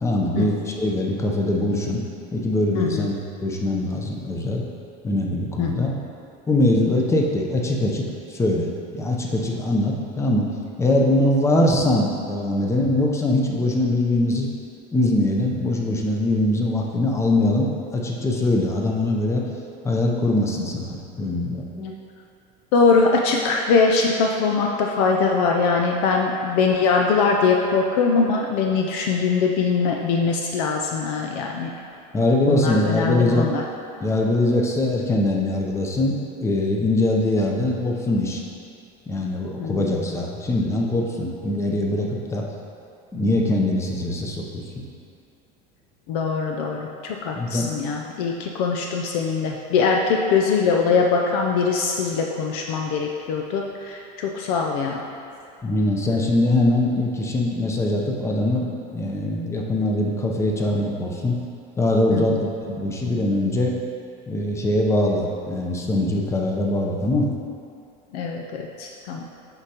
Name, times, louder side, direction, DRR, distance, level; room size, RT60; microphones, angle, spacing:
voice 1, 0.0-2.0 2.3-3.1 3.4-4.6 5.0-6.0 6.5-10.5 10.8-14.5 14.9-19.5 19.8-21.9 32.1-33.5 34.0-38.4 39.1-42.5 43.1-44.8 47.4-47.7 55.6-61.3 61.8-62.4 62.7-63.7 64.3-67.3, left 1 dB, 15° left, -1 dB, 0.7 m, -22 dB
voice 2, 2.7-3.1 5.6-5.9 22.7-31.7 32.5-33.6 39.6-40.2 46.1-55.0 62.1-62.5 68.1-69.2, left 5 dB, 80° left, 0 dB, 0.6 m, -22 dB
8.0 x 5.2 x 2.9 m, 2.5 s
cardioid pair, 140°, 20 cm